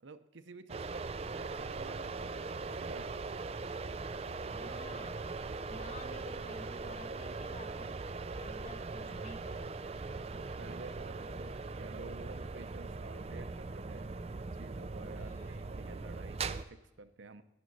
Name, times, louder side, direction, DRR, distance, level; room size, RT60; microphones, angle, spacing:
voice 1, 0.0-3.5 10.3-14.1 14.5-17.4, right 3 dB, 75° right, 10 dB, 0.7 m, -51 dB
sound 1, 0.7-16.6, right 3 dB, 30° right, 0.4 m, -40 dB
voice 2, 4.5-8.0 8.4-9.8 15.1-15.7, left 2 dB, 35° left, 4 dB, 1.2 m, -52 dB
11.0 x 10.5 x 4.0 m, 0.98 s
head